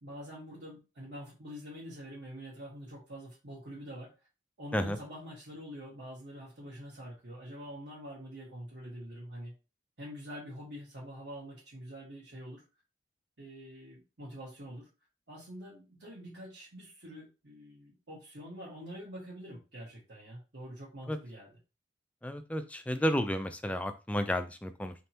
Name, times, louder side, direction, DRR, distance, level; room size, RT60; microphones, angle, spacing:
voice 1, 0.0-4.1 4.6-9.5 10.0-12.6 13.4-14.9 15.3-21.5, equal, 70° right, -7 dB, 1.4 m, -46 dB
voice 2, 22.2-24.9, equal, 5° left, 8 dB, 0.3 m, -32 dB
4.2 x 3.4 x 2.9 m, 0.30 s
head